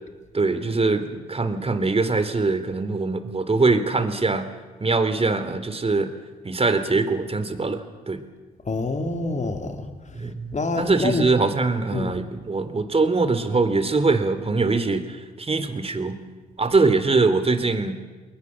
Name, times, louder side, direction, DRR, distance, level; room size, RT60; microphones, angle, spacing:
voice 1, 0.3-4.5 4.8-6.1 6.4-8.2 10.1-16.2 16.6-17.9, right 3 dB, 30° right, 10 dB, 3.4 m, -22 dB
voice 2, 8.7-9.9 10.5-11.3 11.9-12.2, left 3 dB, 40° left, 6 dB, 3.6 m, -26 dB
29.5 x 20.5 x 7.4 m, 1.3 s
hypercardioid pair, 45°, 19 cm